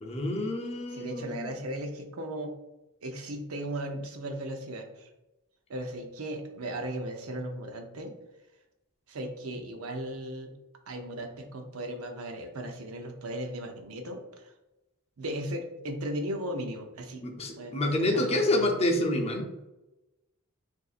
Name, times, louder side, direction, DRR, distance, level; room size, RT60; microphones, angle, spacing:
voice 1, 0.0-1.5 17.2-19.4, left 1 dB, 30° left, 2 dB, 0.6 m, -28 dB
voice 2, 0.9-2.5 3.0-5.1 5.7-8.1 9.1-10.5 10.9-14.5 15.2-17.2 17.6-18.7, right 1 dB, 80° right, 4 dB, 0.7 m, -36 dB
6.7 x 2.6 x 2.4 m, 0.99 s
head